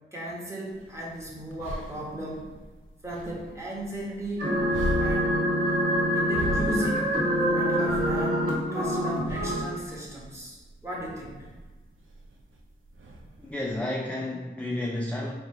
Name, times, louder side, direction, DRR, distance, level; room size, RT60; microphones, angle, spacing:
voice 1, 0.1-2.5 3.0-4.6 5.0-5.4 6.1-7.1 7.4-10.6 10.8-11.4, right 1 dB, 15° right, -5 dB, 1.2 m, -36 dB
sound 1, 0.7-13.8, equal, 85° right, 0.5 m, -39 dB
sound 2, 4.4-9.6, equal, 45° right, 1.5 m, -25 dB
voice 2, 13.4-15.3, left 1 dB, 5° left, -1 dB, 0.4 m, -31 dB
3.3 x 2.4 x 4.3 m, 1.3 s
wide cardioid pair, 65°, 20 cm